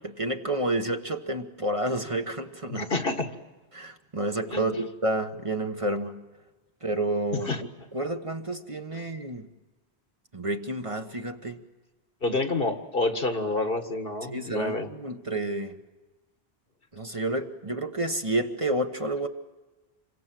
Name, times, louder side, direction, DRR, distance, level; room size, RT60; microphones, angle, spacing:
voice 1, 0.0-2.9 3.7-6.2 6.8-7.5 7.9-9.5 10.3-11.6 14.3-15.8 16.9-19.3, right 1 dB, 30° right, 5 dB, 1.4 m, -30 dB
voice 2, 2.7-3.4 4.5-4.7 7.4-7.6 8.9-9.0 12.2-14.9, left 2 dB, 55° left, 7 dB, 2.0 m, -28 dB
28.0 x 24.0 x 7.7 m, 1.2 s
omnidirectional pair, 1.1 m